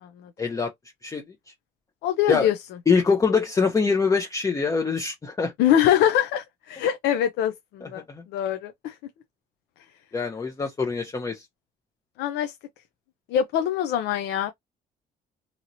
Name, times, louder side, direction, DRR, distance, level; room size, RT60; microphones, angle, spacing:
voice 1, 0.4-0.7 1.0-1.2 2.3-2.5 2.9-5.5 7.8-8.2 10.1-11.4, left 5 dB, 20° left, 0.6 m, -24 dB
voice 2, 2.0-2.6 5.6-8.0 8.3-9.0 12.2-12.5 13.3-14.5, left 10 dB, 80° left, 0.5 m, -23 dB
2.8 x 2.8 x 2.6 m
cardioid pair, 110°, 17 cm